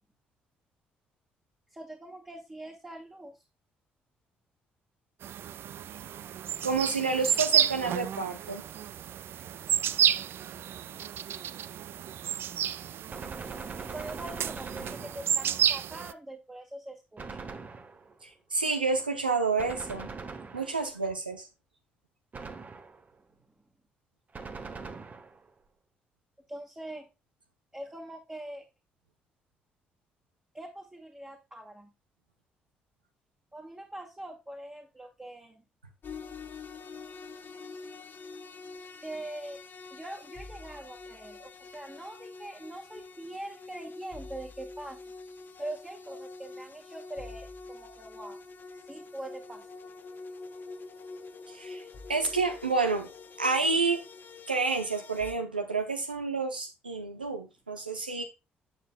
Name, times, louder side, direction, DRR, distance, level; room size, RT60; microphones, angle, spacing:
voice 1, 1.7-3.3 13.9-17.5 26.5-27.1 27.7-28.6 30.5-31.9 33.5-35.6 39.0-39.6 39.9-45.0 45.6-48.4 48.9-49.7, right 1 dB, 15° right, 1.8 m, -43 dB
sound 1, 5.2-16.1, right 10 dB, 50° right, 0.4 m, -31 dB
voice 2, 6.6-8.6 18.2-20.1 20.5-21.5 51.5-51.8 52.1-53.1 53.4-54.0 54.5-58.2, right 4 dB, 90° right, 0.7 m, -29 dB
Gunshot gunfire, 13.1-15.6 17.2-18.2 19.6-21.0 22.3-23.1 24.3-25.5, right 4 dB, 35° right, 1.2 m, -42 dB
sound 2, 36.0-55.3, left 3 dB, 45° left, 1.2 m, -46 dB
9.1 x 6.8 x 2.2 m
figure-of-eight pair, 45°, 5 cm